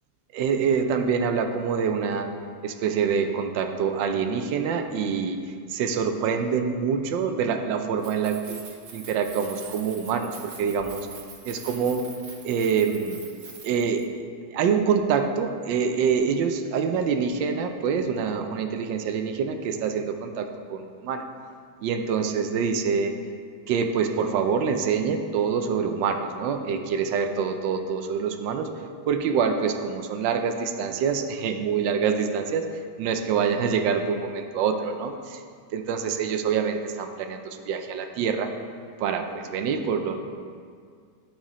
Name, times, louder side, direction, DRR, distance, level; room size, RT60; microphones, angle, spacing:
voice 1, 0.3-2.3 2.6-8.6 8.9-11.1 11.4-12.0 12.4-13.2 13.6-14.1 14.5-21.2 21.8-23.1 23.7-28.7 29.1-32.7 33.0-35.4 35.7-38.5 39.0-40.2, right 6 dB, 80° right, 6 dB, 1.3 m, -26 dB
Keys jangling, 7.9-14.0, right 5 dB, 50° right, 0.9 m, -44 dB
11.5 x 4.7 x 4.1 m, 2.1 s
omnidirectional pair, 2.0 m